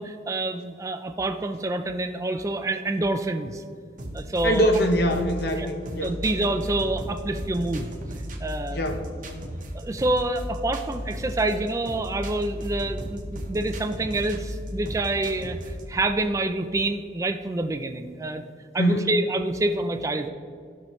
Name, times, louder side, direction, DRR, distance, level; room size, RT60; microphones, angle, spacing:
voice 1, 0.0-3.6 4.1-4.7 5.6-5.7 6.0-7.9 8.4-8.8 9.7-15.6 15.9-18.4 18.7-20.3, right 2 dB, 15° right, 7 dB, 0.3 m, -27 dB
sound 1, 4.0-16.0, equal, 45° right, 0.9 m, -35 dB
voice 2, 4.4-6.1 8.7-9.1 18.8-19.1, equal, 55° left, 5 dB, 0.8 m, -23 dB
13.5 x 5.6 x 3.1 m, 2.2 s
head